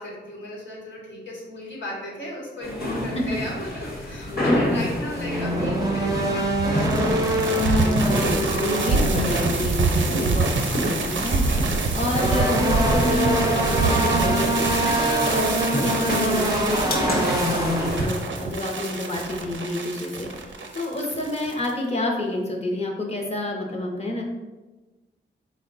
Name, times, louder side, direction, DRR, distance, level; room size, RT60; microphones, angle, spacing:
voice 1, 0.0-6.9, left 1 dB, 75° left, -5 dB, 1.2 m, -36 dB
sound 1, 2.6-18.1, left 1 dB, 55° left, 1.0 m, -30 dB
voice 2, 4.3-4.9 7.8-11.4 11.9-20.3 20.7-24.2, left 1 dB, 35° left, 0 dB, 0.6 m, -29 dB
sound 2, 5.1-10.2 12.0-17.9, right 1 dB, 20° right, 0.4 m, -25 dB
sound 3, 6.4-21.7, right 3 dB, 85° right, 0.5 m, -26 dB
4.3 x 2.1 x 3.9 m, 1.2 s
wide cardioid pair, 175°, 19 cm